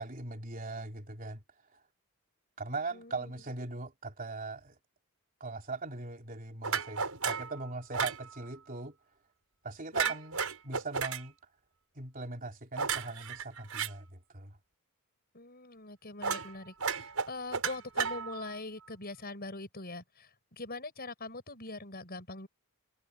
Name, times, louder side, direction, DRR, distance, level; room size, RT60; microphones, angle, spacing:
voice 1, 0.0-1.4 1.7-1.8 2.6-4.7 5.4-9.0 9.6-11.3 12.0-14.1 14.3-14.6, right 3 dB, 40° right, 3.7 m, -40 dB
voice 2, 2.9-3.3 9.9-10.2 15.3-22.5, left 2 dB, 45° left, 7.1 m, -43 dB
sound 1, 6.6-7.5 7.9-8.2 9.9-11.2 12.8-13.9 16.2-16.5 16.8-18.5, right 6 dB, 75° right, 6.4 m, -33 dB
head